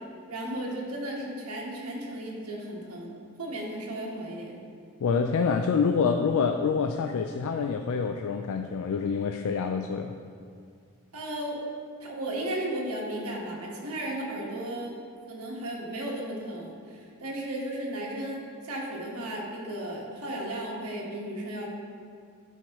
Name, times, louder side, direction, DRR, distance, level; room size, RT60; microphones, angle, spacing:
voice 1, 0.3-4.6 11.1-11.6 12.0-15.0 15.3-21.7, right 1 dB, 85° right, -2 dB, 1.4 m, -35 dB
voice 2, 5.0-10.1, left 5 dB, 70° left, 5 dB, 0.3 m, -26 dB
11.0 x 4.6 x 3.0 m, 2.2 s
head